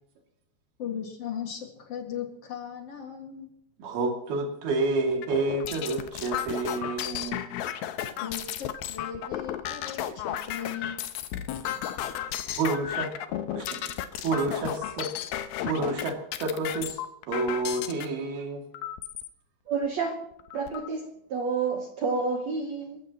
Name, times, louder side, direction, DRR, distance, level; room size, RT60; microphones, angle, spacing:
voice 1, 0.8-3.5 8.2-11.0 11.5-12.1, left 8 dB, 45° left, 2 dB, 2.4 m, -38 dB
voice 2, 3.8-7.4 12.6-13.1 13.5-13.9 14.2-15.1 15.6-17.0 17.3-18.6, right 3 dB, 60° right, 1 dB, 4.4 m, -29 dB
sound 1, 5.2-18.1 18.7-19.3 19.8-19.9 20.2-20.9, left 11 dB, 75° left, 2.5 m, -34 dB
voice 3, 19.7-20.2 20.5-23.0, right 4 dB, 85° right, 2 dB, 1.5 m, -29 dB
29.5 x 15.0 x 3.1 m, 0.76 s
omnidirectional pair, 5.1 m